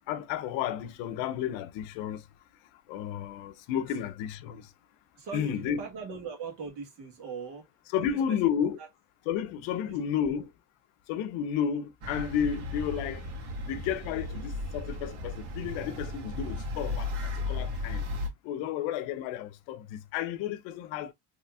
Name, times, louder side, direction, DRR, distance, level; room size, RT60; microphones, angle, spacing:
voice 1, 0.1-2.2 2.9-4.7 5.3-5.8 7.9-8.8 9.3-10.5 11.1-13.2 13.7-18.0 18.4-21.1, left 9 dB, 75° left, 0.7 m, -32 dB
voice 2, 5.1-7.7 8.1-8.4 8.8-8.9 9.8-10.4, right 5 dB, 60° right, 1.6 m, -41 dB
sound 1, 12.0-18.3, left 2 dB, 90° right, 1.4 m, -35 dB
4.1 x 3.0 x 2.2 m
cardioid pair, 175°, 46 cm